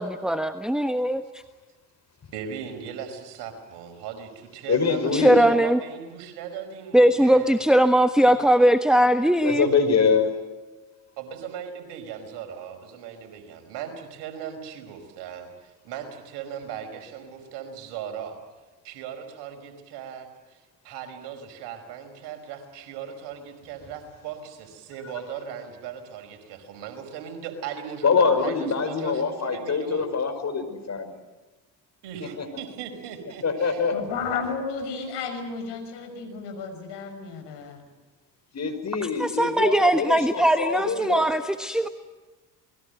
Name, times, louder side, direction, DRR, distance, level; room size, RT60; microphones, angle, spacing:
voice 1, 0.0-1.4 5.1-5.8 6.9-9.7 39.2-41.9, right 1 dB, ahead, 8 dB, 1.3 m, -20 dB
voice 2, 2.3-7.6 8.2-8.3 11.2-18.4 18.8-30.1 32.0-33.8, right 8 dB, 70° right, 6 dB, 5.0 m, -38 dB
voice 3, 4.7-5.4 9.4-10.3 28.0-31.2 32.2-32.6 33.4-34.0 38.5-41.4, left 5 dB, 35° left, 7 dB, 5.3 m, -24 dB
voice 4, 33.9-37.8, left 5 dB, 65° left, 5 dB, 6.2 m, -33 dB
28.0 x 21.0 x 7.9 m, 1.2 s
hypercardioid pair, 55°, 44 cm